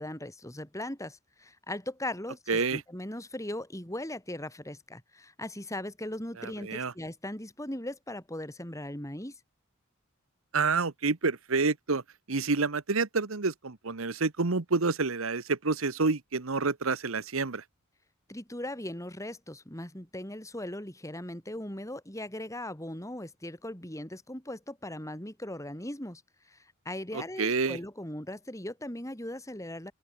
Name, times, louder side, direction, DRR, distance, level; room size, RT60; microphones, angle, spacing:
voice 1, 0.0-9.4 18.3-26.2 26.5-29.9, left 1 dB, 15° left, 4.0 m, -39 dB
voice 2, 2.5-2.8 6.4-6.9 10.5-12.0 12.3-17.6 27.1-27.8, right 4 dB, 75° right, 1.2 m, -28 dB
open air
head